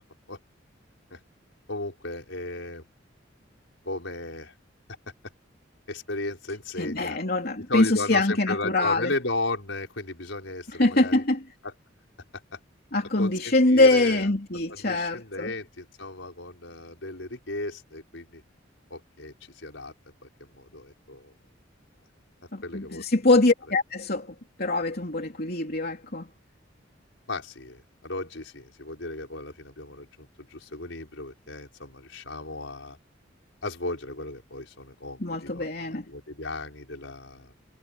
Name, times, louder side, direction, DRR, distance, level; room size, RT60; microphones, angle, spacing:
voice 1, 1.7-2.8 3.9-4.5 5.9-7.2 7.7-11.2 11.6-11.7 12.5-12.6 13.2-14.3 14.7-18.4 18.9-19.9 20.2-21.3 22.6-23.0 27.3-33.0 33.6-37.5, left 2 dB, 80° left, 5.2 m, -35 dB
voice 2, 6.8-9.1 10.8-11.4 12.9-15.5 22.5-26.3 35.2-36.1, left 2 dB, 55° left, 3.1 m, -24 dB
head